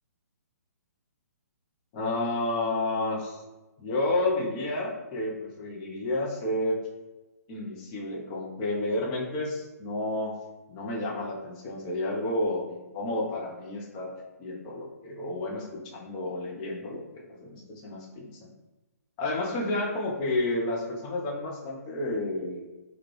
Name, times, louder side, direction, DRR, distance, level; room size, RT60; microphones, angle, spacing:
voice 1, 1.9-3.4 3.8-6.8 7.5-10.4 10.7-17.0 17.3-18.3 19.2-22.6, left 2 dB, 25° left, -2 dB, 0.7 m, -31 dB
3.5 x 2.3 x 3.2 m, 1.1 s
figure-of-eight pair, 125°, 9 cm